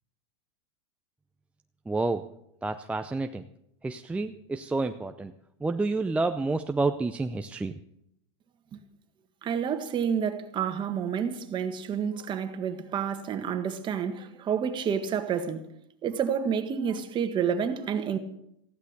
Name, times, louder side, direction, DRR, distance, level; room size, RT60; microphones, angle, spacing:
voice 1, 1.9-2.3 2.6-3.5 3.8-5.3 5.6-7.7, right 3 dB, 10° right, 0.6 m, -29 dB
voice 2, 9.4-15.6 16.0-18.2, right 7 dB, 30° right, 1.7 m, -29 dB
15.5 x 11.5 x 6.7 m
supercardioid pair, 120°, 15 cm